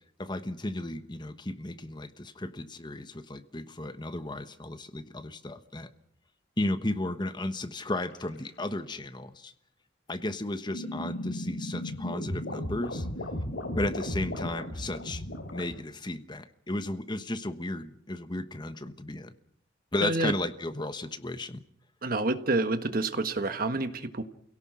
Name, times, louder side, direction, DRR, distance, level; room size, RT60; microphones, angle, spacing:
voice 1, 0.2-5.9 6.6-9.5 10.1-13.1 13.7-15.2 15.5-19.3 19.9-21.6, left 1 dB, 25° left, 10 dB, 1.2 m, -34 dB
sound 1, 7.9-8.3 10.7-15.7, left 1 dB, 75° left, 3.3 m, -35 dB
voice 2, 20.0-20.3 22.0-24.2, right 2 dB, 50° right, 9 dB, 1.5 m, -28 dB
28.5 x 17.5 x 6.2 m, 0.69 s
head